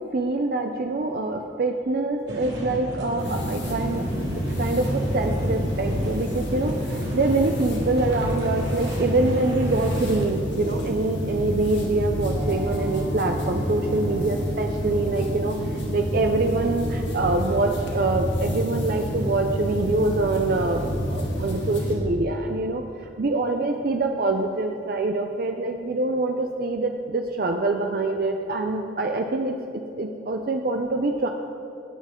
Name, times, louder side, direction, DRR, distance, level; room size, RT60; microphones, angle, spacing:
voice 1, 0.0-4.0 4.6-22.8 23.2-29.5 30.0-31.3, right 2 dB, 55° right, 4 dB, 0.5 m, -25 dB
sound 1, 2.3-10.3, equal, 80° right, 2.3 m, -33 dB
sound 2, 3.2-21.9, equal, 80° left, 1.9 m, -29 dB
Piano, 12.3-23.2 23.5-23.7 24.0-24.2 24.5-24.8 25.1-25.2, equal, 25° right, 1.7 m, -41 dB
18.0 x 6.6 x 3.7 m, 2.8 s
head